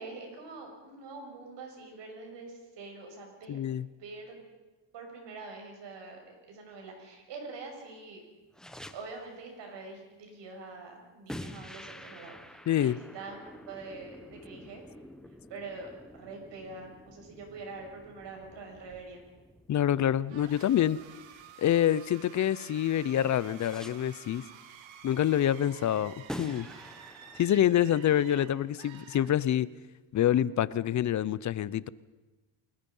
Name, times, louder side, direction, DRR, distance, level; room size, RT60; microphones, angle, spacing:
voice 1, 0.0-3.6 4.0-4.4 4.9-8.2 8.9-14.8 15.5-19.2, right 3 dB, 65° right, 2 dB, 6.7 m, -45 dB
voice 2, 3.5-3.9 12.7-13.0 19.7-21.0 21.6-24.4 25.0-26.7 27.4-29.7 30.1-31.9, left 11 dB, 40° left, 19 dB, 0.6 m, -26 dB
sound 1, 8.5-9.4 11.3-22.2 23.5-24.3 26.3-27.4, equal, ahead, 1.1 m, -47 dB
sound 2, 20.3-29.8, right 8 dB, 80° right, 2.0 m, -51 dB
29.0 x 20.5 x 5.5 m, 1.2 s
cardioid pair, 140°, 45 cm